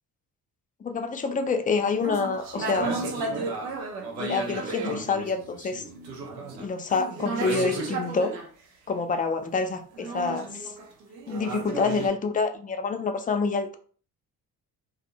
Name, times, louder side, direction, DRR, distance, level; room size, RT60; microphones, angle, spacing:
voice 1, 0.8-2.9 4.2-5.8 6.6-8.4 8.9-10.7 11.3-13.8, left 4 dB, 20° left, 7 dB, 0.4 m, -27 dB
sound 1, 2.0-8.5 9.9-12.1, right 3 dB, 90° right, 0.6 m, -33 dB
2.5 x 2.1 x 2.8 m, 0.43 s
hypercardioid pair, 45°, 48 cm